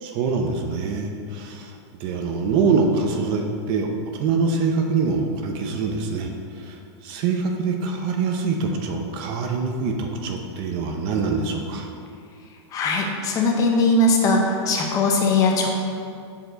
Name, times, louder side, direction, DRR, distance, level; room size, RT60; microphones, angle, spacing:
voice 1, 0.0-11.9, right 4 dB, 35° right, 3 dB, 0.7 m, -25 dB
voice 2, 12.7-15.7, left 2 dB, 25° left, 1 dB, 0.8 m, -20 dB
7.1 x 4.3 x 5.0 m, 2.4 s
supercardioid pair, 155°, 14 cm